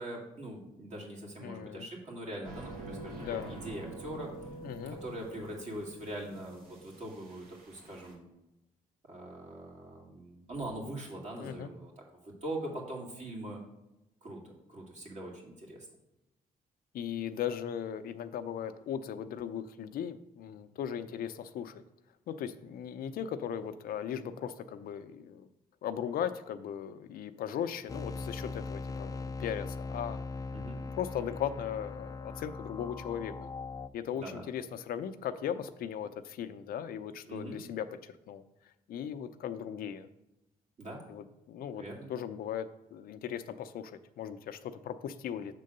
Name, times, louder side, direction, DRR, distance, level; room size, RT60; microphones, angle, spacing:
voice 1, 0.0-4.3 4.9-8.3 9.1-11.9 12.2-13.6 14.2-14.4 14.7-15.9 30.5-30.8 34.1-34.4 37.3-37.6 40.8-41.0 41.8-42.1, right 1 dB, 50° right, -1 dB, 2.3 m, -42 dB
voice 2, 1.4-1.9 3.2-3.6 4.6-5.0 11.4-11.7 16.9-21.8 22.3-25.5 25.8-30.2 30.7-33.5 33.9-40.1 41.1-41.8 42.1-45.5, left 9 dB, 80° left, 10 dB, 0.5 m, -38 dB
sound 1, 2.4-8.1, right 2 dB, 85° right, 1.7 m, -47 dB
sound 2, 27.9-33.9, left 3 dB, 25° left, 0.4 m, -40 dB
7.4 x 3.8 x 6.6 m, 0.91 s
cardioid pair, 95°, 15 cm